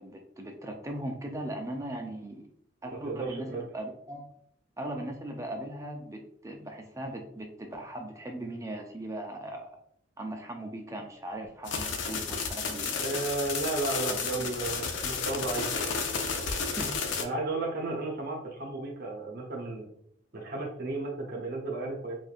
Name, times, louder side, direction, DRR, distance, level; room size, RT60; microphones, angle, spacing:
voice 1, 0.0-2.5 2.8-3.5 3.7-4.2 4.8-9.7 10.2-13.3 14.1-14.5 16.8-16.9, right 1 dB, 15° right, 3 dB, 0.5 m, -39 dB
voice 2, 2.9-3.6 13.0-15.9 17.2-19.8 20.3-22.2, right 2 dB, 50° right, -2 dB, 0.8 m, -33 dB
sound 1, 11.7-17.2, left 5 dB, 75° left, 0.5 m, -32 dB
4.4 x 2.6 x 2.5 m, 0.67 s
head